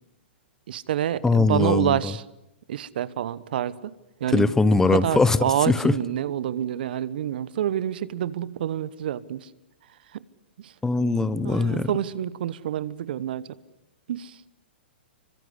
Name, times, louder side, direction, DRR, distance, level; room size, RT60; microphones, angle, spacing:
voice 1, 0.7-2.2 2.7-3.9 4.2-4.5 4.9-9.5 10.1-10.2 10.6-10.7 11.0-11.1 11.4-13.6 14.1-14.4, right 11 dB, 60° right, 18 dB, 1.2 m, -28 dB
voice 2, 1.2-2.0 4.3-5.4 5.7-5.9 10.8-11.9, left 3 dB, 10° left, 16 dB, 1.1 m, -21 dB
27.0 x 24.5 x 8.1 m, 0.90 s
figure-of-eight pair, 115°, 6 cm